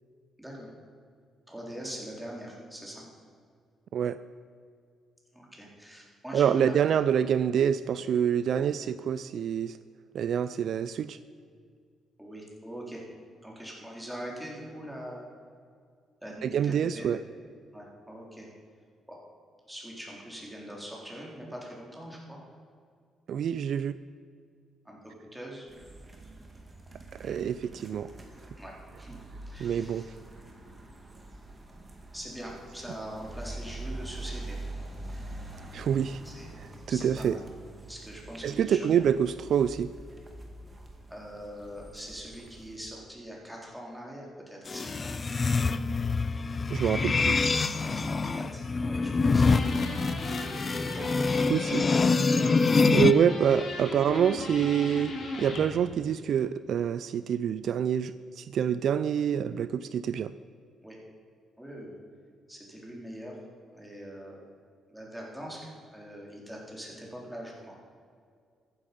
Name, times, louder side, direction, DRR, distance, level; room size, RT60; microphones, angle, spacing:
voice 1, 1.5-3.1 5.3-6.7 12.2-13.0 13.4-15.2 16.2-17.1 17.7-18.5 19.1-19.2 19.7-22.4 24.9-25.7 27.2-27.4 28.6-29.2 29.5-30.1 32.1-34.6 36.1-36.6 36.9-37.4 37.9-39.1 41.1-45.1 48.2-49.7 50.6-51.2 52.7-52.9 60.8-61.0 61.6-61.9 62.5-63.4 63.7-64.5 64.9-67.8, equal, 5° right, -3 dB, 3.7 m, -43 dB
voice 2, 6.3-9.8 10.1-11.2 16.4-17.2 23.3-23.9 27.2-28.1 29.6-30.0 35.7-36.2 36.9-37.4 38.4-39.9 46.7-47.4 51.5-52.0 52.9-60.3, right 8 dB, 65° right, 14 dB, 0.4 m, -26 dB
sound 1, 25.7-42.8, right 2 dB, 25° right, 2.2 m, -44 dB
sound 2, 44.7-53.1, left 4 dB, 35° left, 0.5 m, -25 dB
sound 3, 49.3-55.7, left 2 dB, 55° left, 3.4 m, -38 dB
14.0 x 10.0 x 5.4 m, 2.2 s
cardioid pair, 90°, 0 cm